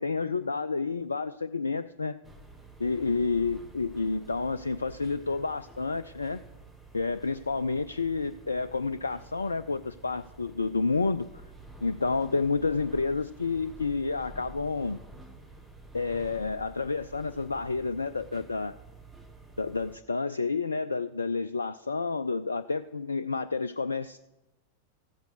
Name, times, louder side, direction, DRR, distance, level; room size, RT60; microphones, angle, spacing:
voice 1, 0.0-2.2 2.8-6.4 6.9-11.3 11.8-15.0 15.9-18.7 19.6-24.2, left 4 dB, 75° left, 13 dB, 0.3 m, -30 dB
sound 1, 2.2-20.0, right 2 dB, ahead, 1.5 m, -50 dB
14.5 x 8.1 x 6.4 m, 0.97 s
figure-of-eight pair, 90°, 0 cm